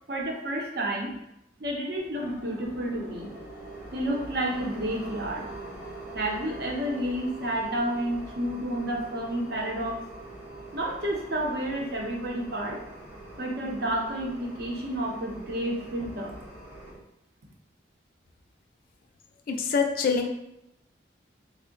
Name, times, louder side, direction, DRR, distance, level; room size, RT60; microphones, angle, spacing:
voice 1, 0.1-1.1 1.6-3.3 3.9-5.5 6.1-10.0 10.7-12.8 13.4-16.3, right 1 dB, 55° right, 0 dB, 0.7 m, -30 dB
sound 1, 2.0-17.0, right 2 dB, 10° right, 0.8 m, -43 dB
voice 2, 19.5-20.3, left 5 dB, 50° left, 3 dB, 0.4 m, -25 dB
3.5 x 2.1 x 3.8 m, 0.82 s
head